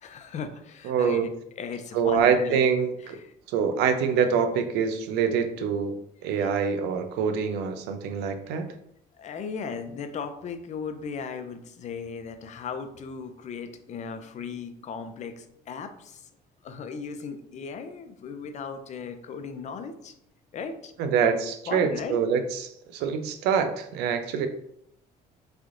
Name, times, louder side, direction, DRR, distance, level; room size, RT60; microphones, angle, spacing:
voice 1, 0.0-1.3 1.6-2.6 3.0-3.3 6.4-6.5 9.2-16.3 16.6-20.1 20.5-20.9 21.7-22.2, left 6 dB, 45° left, 8 dB, 0.4 m, -37 dB
voice 2, 0.8-1.3 1.9-3.2 3.5-5.9 6.2-8.7 21.0-24.5, right 6 dB, 90° right, 8 dB, 0.5 m, -25 dB
3.6 x 3.3 x 2.4 m, 0.73 s
cardioid pair, 110°, 17 cm